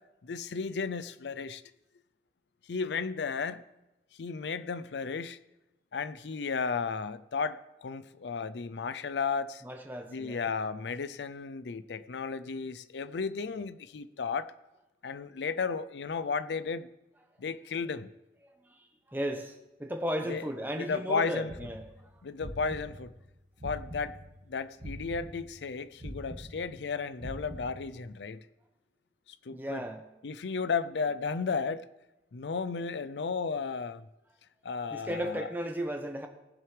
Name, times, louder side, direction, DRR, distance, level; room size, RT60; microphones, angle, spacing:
voice 1, 0.2-1.6 2.7-3.6 4.2-5.4 5.9-9.6 10.1-14.5 15.0-16.9 17.4-18.1 20.3-20.5 20.8-21.5 22.2-23.1 23.6-24.1 24.5-28.4 29.5-29.8 30.2-31.9 32.3-34.1 34.6-35.5, left 5 dB, 85° left, 14 dB, 0.5 m, -34 dB
voice 2, 9.6-10.5 18.4-21.9 29.5-30.0 34.9-36.3, equal, 10° right, 4 dB, 1.0 m, -35 dB
sound 1, 21.5-24.4 24.8-28.1, equal, 45° right, 1.7 m, -44 dB
18.0 x 7.8 x 3.3 m, 0.98 s
head